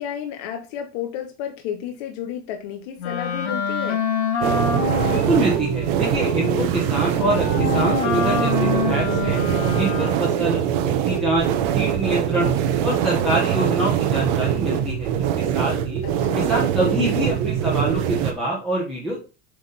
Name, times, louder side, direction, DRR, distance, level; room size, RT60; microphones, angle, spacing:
voice 1, 0.0-4.0 16.0-16.6, left 9 dB, 45° left, 4 dB, 1.0 m, -32 dB
Wind instrument woodwind instrument, 3.0-10.4, left 6 dB, 80° left, 3.2 m, -27 dB
sound 1, 4.4-18.3, right 9 dB, 45° right, 0.9 m, -22 dB
voice 2, 5.1-9.4 9.8-11.5 11.7-12.5 12.8-16.0 16.3-19.2, right 1 dB, ahead, -6 dB, 1.2 m, -25 dB
7.7 x 3.6 x 4.2 m, 0.32 s
supercardioid pair, 175°, 32 cm